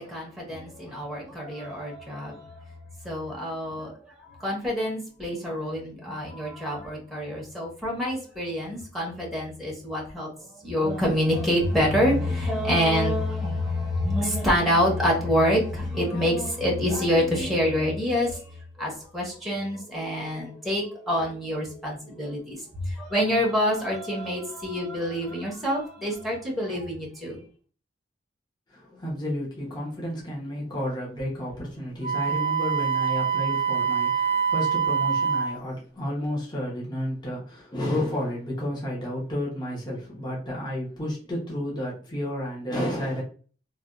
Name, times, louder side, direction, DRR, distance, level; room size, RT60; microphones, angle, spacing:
voice 1, 0.0-3.9 4.2-27.4, equal, ahead, -2 dB, 0.9 m, -27 dB
voice 2, 28.7-43.2, left 1 dB, 25° left, -4 dB, 1.0 m, -31 dB
Wind instrument woodwind instrument, 32.0-35.6, right 7 dB, 90° left, 1.2 m, -25 dB
3.3 x 2.3 x 2.5 m, 0.40 s
head